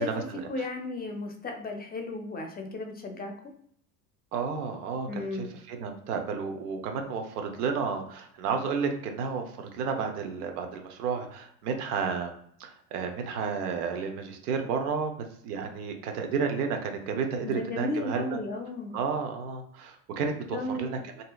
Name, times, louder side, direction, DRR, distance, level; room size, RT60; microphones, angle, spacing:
voice 1, 0.0-3.3 5.1-5.5 17.4-19.0 20.5-21.0, left 2 dB, 20° left, 3 dB, 0.5 m, -34 dB
voice 2, 4.3-12.3 12.6-15.1 15.4-18.4 18.9-21.2, right 5 dB, 80° right, 4 dB, 0.8 m, -32 dB
2.8 x 2.7 x 2.3 m, 0.64 s
hypercardioid pair, 75°, 45 cm